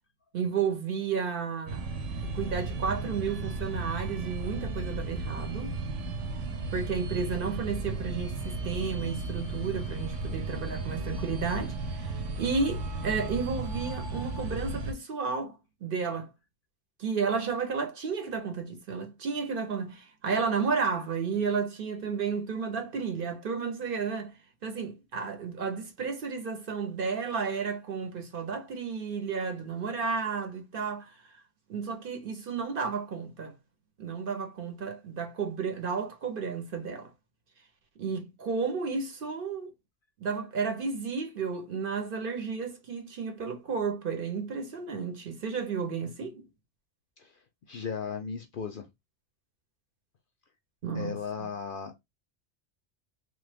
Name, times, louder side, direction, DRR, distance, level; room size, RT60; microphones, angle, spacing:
voice 1, 0.3-1.9 2.3-5.8 6.7-16.3 17.0-24.3 24.6-31.2 31.7-33.5 34.0-37.1 38.0-39.7 40.2-46.5 50.8-51.5, right 5 dB, 55° right, 0.8 m, -32 dB
sound 1, 1.7-14.9, right 3 dB, 85° right, 1.0 m, -34 dB
voice 2, 47.7-48.9 50.9-52.0, left 6 dB, 60° left, 0.6 m, -36 dB
3.1 x 2.2 x 3.3 m
omnidirectional pair, 1.2 m